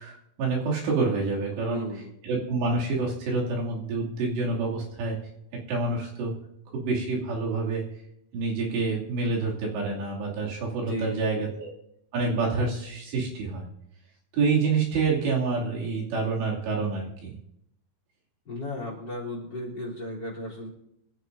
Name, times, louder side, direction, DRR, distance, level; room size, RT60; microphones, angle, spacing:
voice 1, 0.0-1.8 2.2-5.2 5.7-6.4 6.7-7.8 8.3-11.7 12.1-13.7 14.3-17.4, right 3 dB, 80° right, -3 dB, 4.9 m, -27 dB
voice 2, 1.6-2.1 10.9-11.5 18.5-20.7, left 2 dB, 25° left, 0 dB, 3.5 m, -35 dB
25.0 x 13.0 x 2.7 m, 0.79 s
omnidirectional pair, 4.9 m